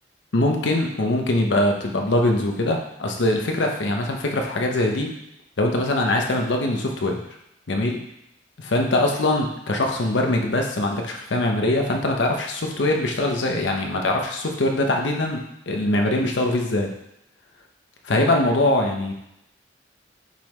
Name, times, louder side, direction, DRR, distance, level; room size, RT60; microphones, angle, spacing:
voice 1, 0.3-5.1 5.6-7.2 7.7-8.0 8.6-15.4 15.7-16.9 18.0-19.1, left 1 dB, 80° left, 2 dB, 0.7 m, -22 dB
5.3 x 3.0 x 3.1 m, 0.80 s
head